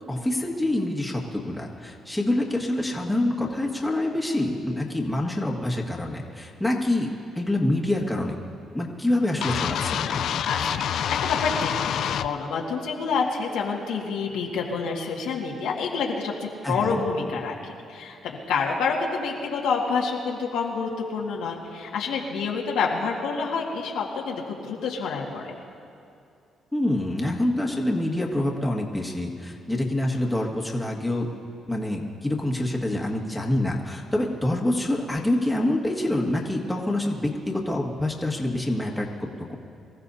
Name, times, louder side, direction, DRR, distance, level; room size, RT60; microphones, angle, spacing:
voice 1, 0.1-8.4 8.7-10.5 16.6-17.0 26.7-31.3 31.7-39.5, left 1 dB, 5° left, -2 dB, 1.8 m, -26 dB
sound 1, 9.4-12.3, left 9 dB, 70° left, 0.4 m, -27 dB
voice 2, 10.5-25.6, left 5 dB, 90° left, -2 dB, 2.0 m, -28 dB
24.5 x 14.5 x 2.8 m, 2.6 s
cardioid pair, 90°, 0 cm